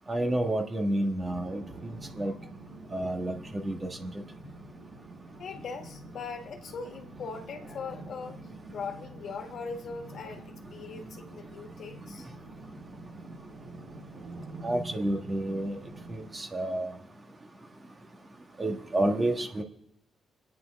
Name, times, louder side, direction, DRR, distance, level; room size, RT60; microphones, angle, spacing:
voice 1, 0.1-2.3 2.9-4.2 14.6-15.8 16.1-17.0 18.6-19.6, right 1 dB, 25° right, 3 dB, 1.5 m, -30 dB
sound 1, 1.3-16.3, right 2 dB, 55° right, 4.4 m, -46 dB
voice 2, 2.1-2.5 5.4-12.3, left 5 dB, 60° left, 4 dB, 1.6 m, -40 dB
26.0 x 9.5 x 3.5 m, 0.81 s
cardioid pair, 130°, 0 cm